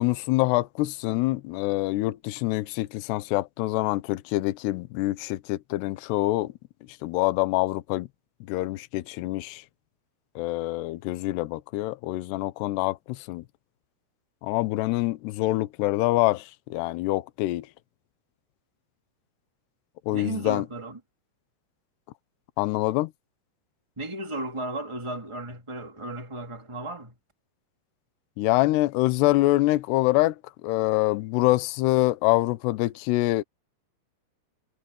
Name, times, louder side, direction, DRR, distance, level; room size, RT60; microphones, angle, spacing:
voice 1, 0.0-6.5 7.0-8.1 8.5-9.6 10.4-13.4 14.4-17.7 20.1-20.7 22.6-23.1 28.4-30.4 30.6-33.4, left 18 dB, 75° left, 2.6 m, -25 dB
voice 2, 20.1-21.0 23.9-27.2, right 2 dB, 10° right, 1.3 m, -34 dB
omnidirectional pair, 5.7 m